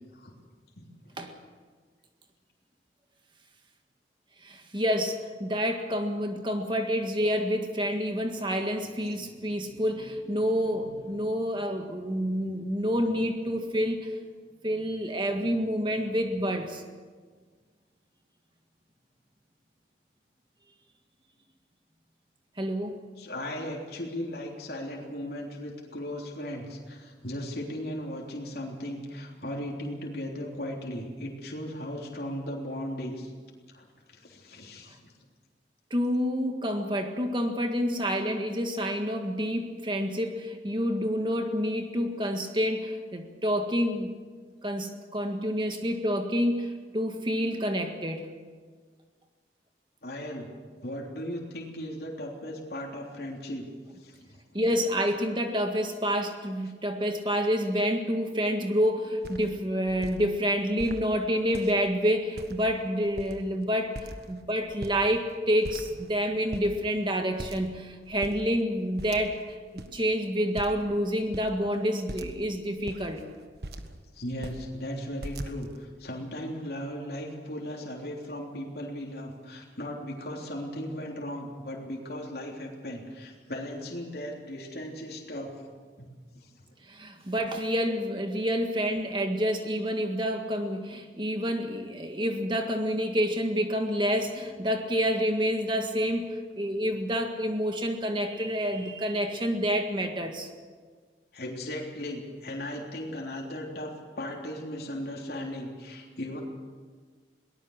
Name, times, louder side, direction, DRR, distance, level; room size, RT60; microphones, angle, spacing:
voice 1, 4.4-14.1 14.6-16.8 22.6-22.9 35.9-44.1 44.6-48.3 54.5-64.0 64.3-69.3 69.7-73.2 86.9-100.5, equal, 25° right, 4 dB, 1.7 m, -28 dB
voice 2, 23.2-33.3 33.7-35.1 50.0-50.5 50.8-53.7 54.0-54.4 74.1-85.5 86.0-86.1 86.3-86.5 101.3-106.4, left 1 dB, 60° left, -2 dB, 3.4 m, -37 dB
sound 1, 58.8-58.9 59.2-59.5 59.9-60.2 60.8-61.0 61.5-61.9 62.4-62.8 63.0-63.6 64.0-64.4 64.7-65.3 65.6-66.2 66.5-66.7 67.4-67.8 68.1-68.4 69.0-69.5 69.8-69.9 70.6-70.9 71.3-71.5 72.1-72.4 72.8-74.0 74.3-74.6 75.2-75.8, right 1 dB, 65° right, 1.5 m, -40 dB
22.5 x 19.0 x 6.5 m, 1.5 s
head